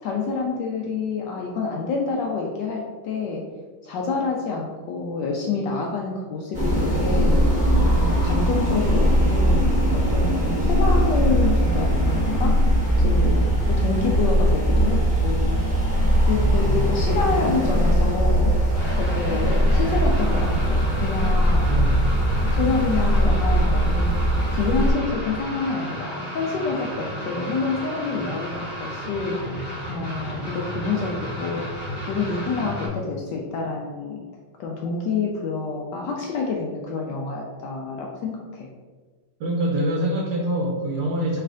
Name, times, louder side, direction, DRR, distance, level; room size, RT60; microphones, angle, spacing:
voice 1, 0.0-3.5 3.8-7.4 7.9-12.6 13.0-15.6 15.9-18.6 18.9-21.9 22.5-29.6 29.9-34.2 34.6-38.7, left 4 dB, 75° left, 0 dB, 1.0 m, -28 dB
sound 1, 6.5-24.9, equal, 5° right, 0.9 m, -20 dB
voice 2, 13.5-13.9 16.3-16.9 21.6-22.6 28.3-28.4 30.1-30.2 39.4-41.4, right 1 dB, 70° right, -2 dB, 1.0 m, -27 dB
sound 2, 18.7-32.9, equal, 20° left, 0.6 m, -33 dB
3.3 x 3.3 x 3.7 m, 1.3 s
omnidirectional pair, 2.3 m